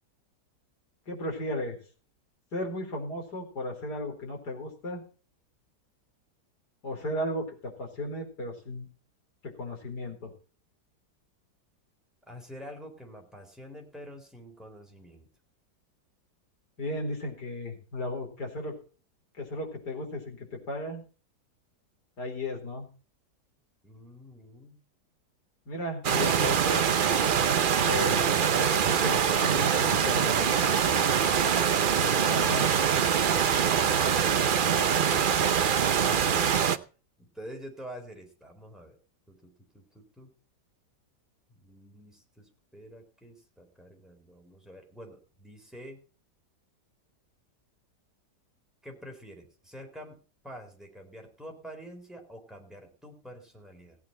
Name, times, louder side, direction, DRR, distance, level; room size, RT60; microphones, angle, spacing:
voice 1, 1.1-1.8 2.5-5.0 6.8-8.9 9.4-10.3 16.8-18.8 19.4-21.0 22.2-22.9 25.7-26.8 27.8-30.8 31.9-32.7 36.1-36.3, left 1 dB, 65° left, 2 dB, 4.5 m, -35 dB
voice 2, 12.3-15.3 23.8-24.8 32.4-32.5 37.2-39.0 39.3-40.3 41.5-46.0 48.8-50.2 50.4-54.0, equal, ahead, 1 dB, 4.0 m, -47 dB
sound 1, 26.0-36.8, right 7 dB, 80° right, 0.4 m, -24 dB
16.5 x 9.3 x 4.3 m, 0.37 s
omnidirectional pair, 1.9 m